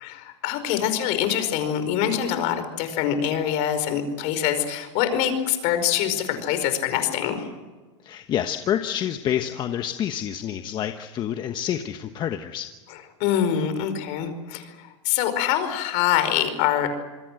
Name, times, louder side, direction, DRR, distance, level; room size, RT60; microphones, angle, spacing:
voice 1, 0.0-7.5 12.9-16.9, left 10 dB, 50° left, 9 dB, 4.9 m, -25 dB
voice 2, 8.0-12.7, left 10 dB, 30° left, 7 dB, 1.2 m, -28 dB
27.0 x 22.0 x 7.8 m, 1.3 s
supercardioid pair, 145°, 15 cm